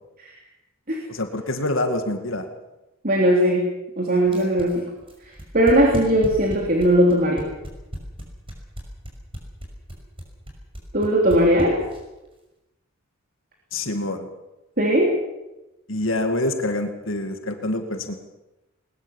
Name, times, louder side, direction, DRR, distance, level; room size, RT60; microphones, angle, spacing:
voice 1, 1.1-2.5 13.7-14.3 15.9-18.1, left 1 dB, 65° left, 6 dB, 2.3 m, -26 dB
voice 2, 3.0-3.6 4.0-4.8 5.5-7.4 10.9-11.8 14.8-15.1, right 1 dB, 45° right, 0 dB, 3.4 m, -18 dB
sound 1, 4.3-12.2, equal, 25° right, 5.7 m, -34 dB
21.0 x 20.5 x 7.3 m, 0.98 s
head